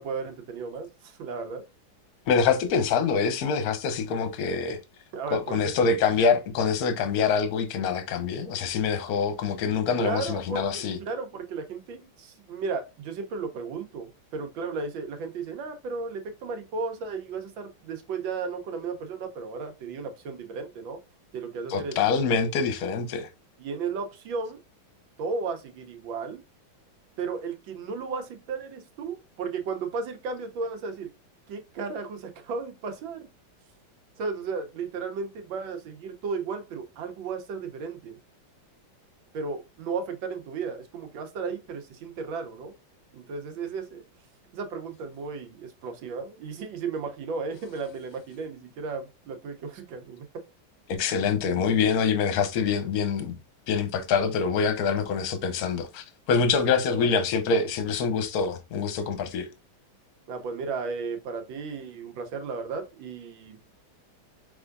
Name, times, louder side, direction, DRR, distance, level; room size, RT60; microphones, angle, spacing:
voice 1, 0.0-1.6 5.1-5.8 10.0-21.0 21.3-21.9 23.6-24.6 25.2-26.4 27.2-31.1 31.5-33.3 34.2-38.2 39.3-42.7 43.1-44.0 44.5-50.2 56.8-57.1 60.3-63.6, right 4 dB, 70° right, 1.6 m, -34 dB
voice 2, 2.3-4.8 5.3-11.0 21.7-23.3 50.9-53.4 53.7-59.5, left 5 dB, 60° left, 1.1 m, -25 dB
5.4 x 3.5 x 2.5 m
omnidirectional pair, 2.2 m